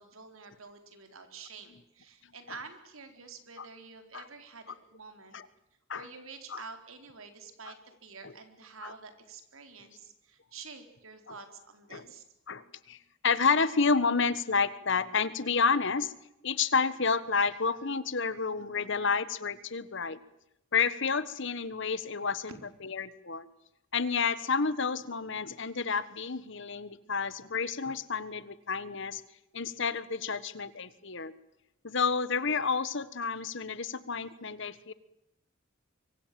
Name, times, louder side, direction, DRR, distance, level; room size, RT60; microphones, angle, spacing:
voice 1, 0.0-5.4 5.9-12.2, right 4 dB, 80° right, 7 dB, 4.1 m, -48 dB
voice 2, 12.5-13.0 13.2-16.1 16.4-20.2 20.7-22.5 22.8-23.5 23.9-29.2 29.5-31.3 31.8-34.9, left 5 dB, 60° left, 15 dB, 1.4 m, -30 dB
25.0 x 24.0 x 7.7 m, 0.83 s
head